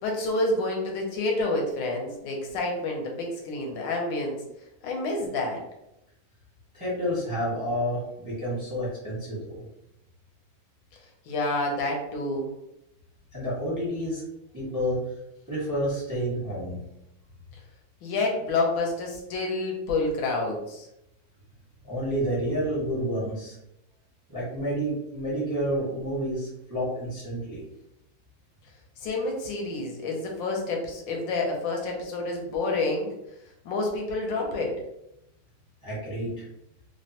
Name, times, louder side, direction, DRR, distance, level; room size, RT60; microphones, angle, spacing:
voice 1, 0.0-4.4 4.8-5.6 11.3-12.5 18.0-20.9 29.0-33.1 33.6-34.7, left 2 dB, 75° left, 0 dB, 1.3 m, -28 dB
voice 2, 6.7-9.6 13.3-14.2 14.5-15.0 15.5-16.8 21.8-23.5 24.3-27.6 35.8-36.4, equal, 25° right, -8 dB, 0.4 m, -29 dB
3.3 x 2.1 x 2.8 m, 0.83 s
omnidirectional pair, 2.2 m